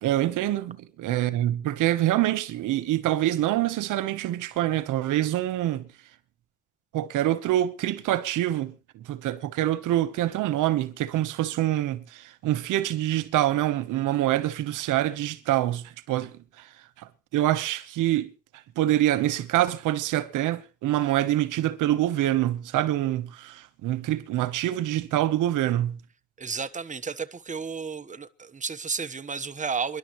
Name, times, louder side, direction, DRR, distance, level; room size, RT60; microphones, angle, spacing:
voice 1, 0.0-5.9 6.9-8.7 9.0-16.7 17.0-18.3 18.8-26.0, right 13 dB, 90° right, 1.2 m, -25 dB
voice 2, 26.4-30.0, right 5 dB, 25° right, 1.3 m, -32 dB
27.0 x 11.5 x 3.2 m
cardioid pair, 90°, 30 cm